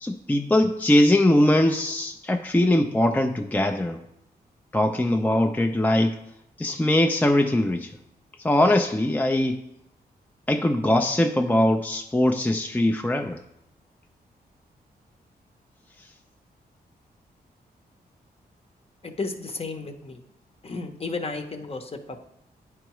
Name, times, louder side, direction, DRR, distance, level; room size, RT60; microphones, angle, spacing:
voice 1, 0.0-4.0 4.7-6.2 6.6-7.9 8.4-9.6 10.5-13.4, left 1 dB, 10° left, 5 dB, 0.4 m, -21 dB
voice 2, 19.0-20.2 20.6-22.2, left 3 dB, 35° left, 6 dB, 0.8 m, -33 dB
9.8 x 4.6 x 3.0 m, 0.80 s
cardioid pair, 75°, 17 cm